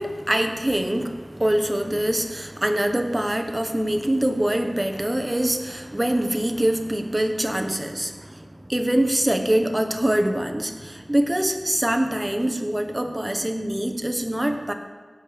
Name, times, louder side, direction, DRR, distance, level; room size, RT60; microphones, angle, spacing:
voice 1, 0.0-14.7, right 1 dB, 25° right, 5 dB, 1.2 m, -24 dB
16.5 x 6.5 x 5.3 m, 1.5 s
wide cardioid pair, 50°, 0 cm